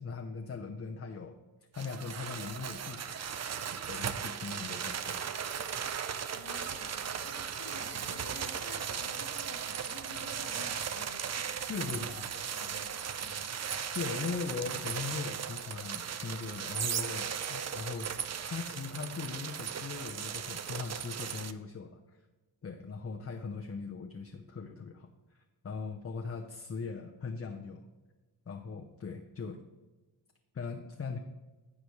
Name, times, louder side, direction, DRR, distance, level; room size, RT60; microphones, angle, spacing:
voice 1, 0.0-1.4 1.7-3.1 3.9-5.2 11.7-12.2 13.9-18.1 18.4-22.2 22.6-25.4 25.6-27.9 28.5-29.6 30.5-31.2, left 5 dB, 30° left, 3 dB, 0.8 m, -40 dB
sound 1, 1.7-21.5, right 7 dB, 35° right, 0.6 m, -37 dB
voice 2, 6.3-11.3 11.9-12.2 12.5-13.6, left 4 dB, 90° left, 0 dB, 2.0 m, -51 dB
15.0 x 5.0 x 3.2 m, 1.2 s
cardioid pair, 70°, 46 cm